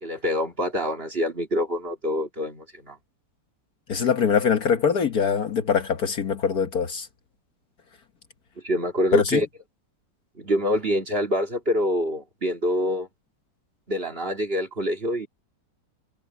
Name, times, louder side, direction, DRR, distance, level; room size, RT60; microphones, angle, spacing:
voice 1, 0.0-3.0 8.6-9.5 10.4-13.1 13.9-15.3, equal, 30° right, 2.9 m, -26 dB
voice 2, 3.9-7.1 9.1-9.4, left 6 dB, 60° left, 1.7 m, -23 dB
omnidirectional pair, 1.9 m